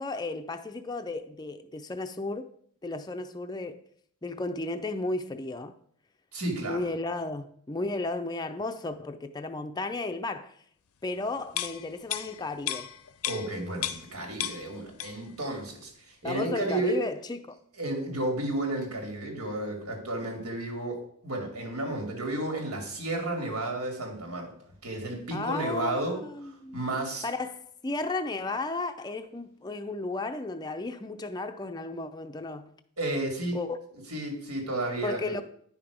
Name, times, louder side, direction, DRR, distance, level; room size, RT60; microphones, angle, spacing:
voice 1, 0.0-2.5 2.8-3.8 4.2-5.8 6.6-10.5 11.0-12.9 16.2-17.6 25.3-26.8 27.2-32.7 33.5-33.8 35.0-35.4, left 2 dB, 20° left, 0.4 m, -34 dB
voice 2, 6.3-6.9 13.2-17.0 17.8-24.5 24.8-27.3 33.0-33.6 34.1-35.4, right 2 dB, 80° right, 2.6 m, -32 dB
sound 1, 11.5-14.1 14.4-15.4 15.7-15.8, left 11 dB, 80° left, 0.6 m, -34 dB
10.0 x 5.9 x 5.0 m
head